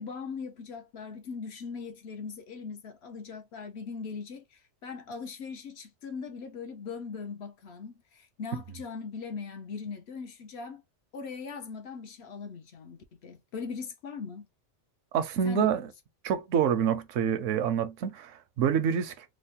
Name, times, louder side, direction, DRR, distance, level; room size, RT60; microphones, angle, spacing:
voice 1, 0.0-10.8 11.1-14.5 15.4-15.8, left 5 dB, 65° left, 0.8 m, -40 dB
voice 2, 15.1-15.8 16.2-19.2, right 8 dB, 75° right, 0.9 m, -27 dB
3.1 x 2.0 x 4.1 m
omnidirectional pair, 1.3 m